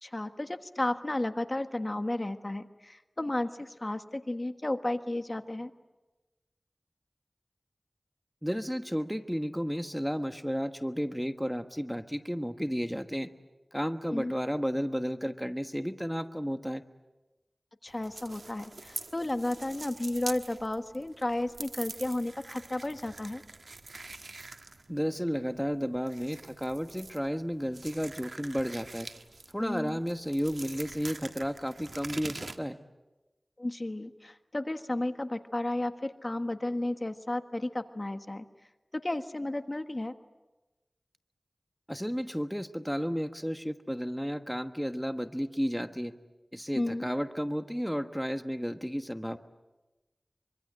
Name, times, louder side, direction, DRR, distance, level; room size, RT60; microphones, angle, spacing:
voice 1, 0.0-5.7 14.1-14.3 17.8-23.4 29.6-30.0 33.6-38.4 38.9-40.1 46.7-47.1, left 1 dB, 45° left, 9 dB, 1.3 m, -33 dB
voice 2, 8.4-13.3 13.7-16.8 24.9-29.1 29.5-32.8 41.9-46.1 46.5-49.4, equal, ahead, 9 dB, 1.3 m, -32 dB
sound 1, 17.9-32.6, right 3 dB, 80° right, 1.4 m, -45 dB
24.5 x 24.5 x 8.9 m, 1.1 s
wide cardioid pair, 45°, 0 cm